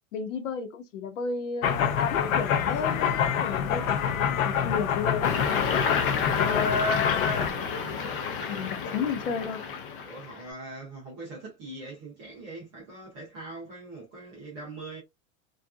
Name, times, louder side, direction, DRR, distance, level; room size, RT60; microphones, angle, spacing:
voice 1, 0.1-5.3 5.7-6.0 6.4-7.9 8.5-9.6, left 5 dB, 65° left, 1.0 m, -33 dB
sound 1, 1.6-7.5, left 8 dB, 85° left, 0.7 m, -26 dB
sound 2, 5.2-10.4, left 5 dB, 40° left, 0.6 m, -29 dB
voice 2, 10.0-15.0, right 2 dB, 10° right, 0.4 m, -42 dB
2.7 x 2.5 x 2.3 m
supercardioid pair, 175°, 40 cm